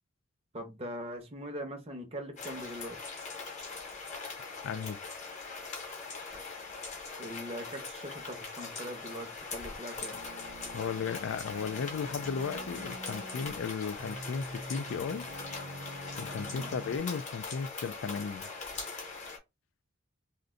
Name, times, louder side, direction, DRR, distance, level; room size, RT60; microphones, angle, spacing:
voice 1, 0.5-3.0 7.2-10.2 16.5-16.7, equal, 30° right, 0.7 m, -41 dB
sound 1, 2.4-19.4, left 4 dB, 35° left, 0.8 m, -41 dB
voice 2, 4.6-5.0 10.7-15.3 16.2-18.5, left 6 dB, 70° left, 0.3 m, -35 dB
sound 2, 10.1-13.6 14.0-17.0, right 2 dB, 90° right, 0.6 m, -46 dB
2.6 x 2.1 x 3.6 m
head